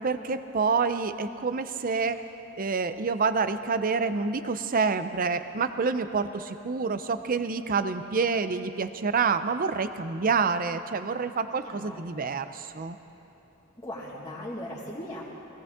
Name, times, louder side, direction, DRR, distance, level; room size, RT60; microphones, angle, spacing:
voice 1, 0.0-2.2 2.6-13.0, right 5 dB, 45° right, 11 dB, 0.6 m, -27 dB
voice 2, 11.6-12.3 13.8-15.2, left 1 dB, 20° left, -7 dB, 1.7 m, -39 dB
21.0 x 17.0 x 3.6 m, 3.0 s
head